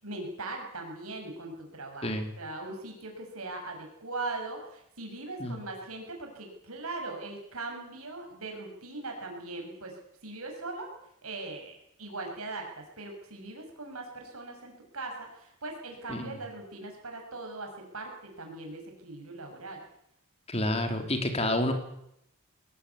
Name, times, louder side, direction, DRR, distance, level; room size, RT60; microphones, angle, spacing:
voice 1, 0.0-10.0 10.2-10.9 11.2-19.8, right 2 dB, 75° right, 2 dB, 6.5 m, -40 dB
voice 2, 20.5-21.7, left 1 dB, 30° left, 6 dB, 3.4 m, -29 dB
22.5 x 19.0 x 8.4 m, 0.77 s
head